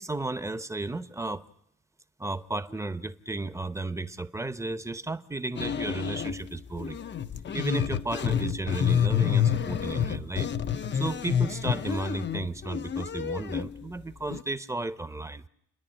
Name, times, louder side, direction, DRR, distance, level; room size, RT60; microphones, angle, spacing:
voice 1, 0.0-1.4 2.2-7.0 7.5-10.5 10.9-15.4, right 2 dB, 10° right, 0.8 m, -33 dB
sound 1, 5.6-6.4 6.8-13.7 14.3-14.4, left 8 dB, 40° left, 0.7 m, -28 dB
29.5 x 10.5 x 8.9 m
cardioid pair, 90°, 30 cm